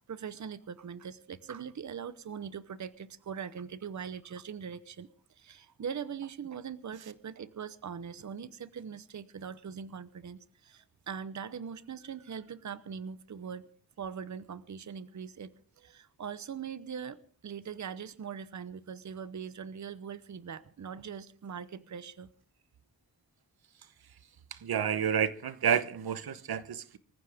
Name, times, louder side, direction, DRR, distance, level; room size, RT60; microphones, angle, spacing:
voice 1, 0.1-13.7 14.0-15.5 15.8-22.3, right 7 dB, 50° right, 0.9 m, -41 dB
voice 2, 24.5-27.0, right 8 dB, 85° right, 1.0 m, -30 dB
25.0 x 15.0 x 3.5 m
wide cardioid pair, 135°, 36 cm